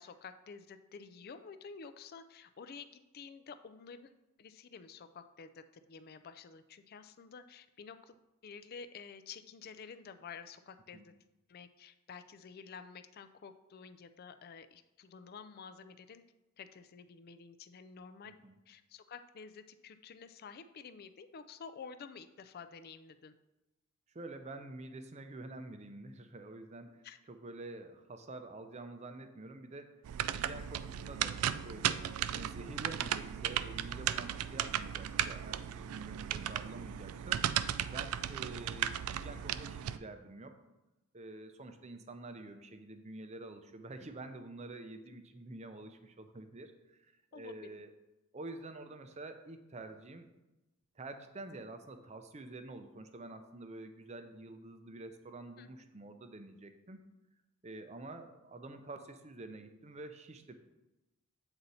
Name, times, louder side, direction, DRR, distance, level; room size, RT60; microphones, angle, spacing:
voice 1, 0.0-2.9 3.1-4.1 4.4-8.2 8.4-11.1 11.5-16.2 16.6-18.3 18.7-23.3 27.0-27.2 34.6-34.9 45.1-45.2 47.3-47.8 55.6-55.7, left 5 dB, 45° left, 11 dB, 0.4 m, -50 dB
voice 2, 18.3-18.6 24.1-32.0 32.3-37.4 37.9-40.5 41.1-47.9 48.3-50.3 51.0-57.0 57.6-60.6, right 2 dB, 30° right, 8 dB, 0.5 m, -48 dB
sound 1, 30.0-40.0, right 10 dB, 85° right, 0.3 m, -36 dB
7.9 x 4.2 x 4.1 m, 1.0 s
head